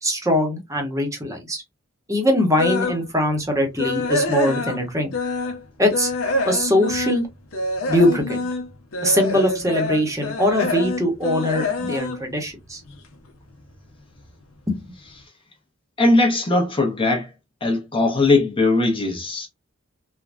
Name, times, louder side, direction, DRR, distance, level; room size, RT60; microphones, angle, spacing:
voice 1, 0.0-1.6 2.1-5.1 5.8-6.1 6.5-7.3 7.9-8.4 9.0-12.8 14.7-14.8, left 1 dB, 15° right, 0.8 m, -21 dB
sound 1, 2.6-3.0 3.4-5.6 5.9-13.1 13.5-13.7 14.2-14.3 14.7-14.8, left 2 dB, 80° left, 0.7 m, -26 dB
voice 2, 16.0-17.3 17.6-19.5, left 2 dB, 25° left, 0.7 m, -19 dB
3.3 x 2.2 x 2.4 m
head